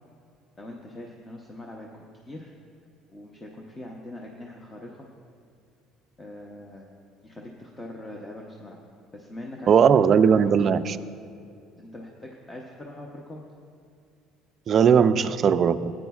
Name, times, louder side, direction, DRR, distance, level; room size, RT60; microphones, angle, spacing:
voice 1, 0.6-2.5 3.1-5.1 6.2-6.9 7.2-8.8 9.1-10.5 11.8-13.4, left 1 dB, 20° left, 0 dB, 0.7 m, -42 dB
voice 2, 9.7-11.0 14.7-15.9, right 7 dB, 35° right, 11 dB, 0.3 m, -18 dB
16.5 x 9.2 x 2.3 m, 2.5 s
cardioid pair, 145°, 0 cm